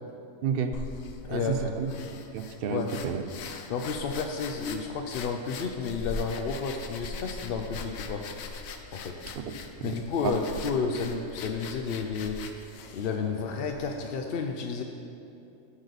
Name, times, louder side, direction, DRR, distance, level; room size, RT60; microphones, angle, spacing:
voice 1, 0.4-0.8 1.3-1.9 2.3-3.2 9.5-10.0 10.2-10.4, right 7 dB, 60° right, 8 dB, 0.6 m, -31 dB
sound 1, 0.7-14.2, left 4 dB, 80° left, 1.1 m, -42 dB
voice 2, 1.2-1.7 2.7-3.0 3.7-8.2 8.9-9.2 9.8-12.4 12.9-14.8, left 5 dB, 60° left, 3 dB, 0.6 m, -31 dB
11.5 x 6.4 x 4.0 m, 2.8 s
omnidirectional pair, 1.4 m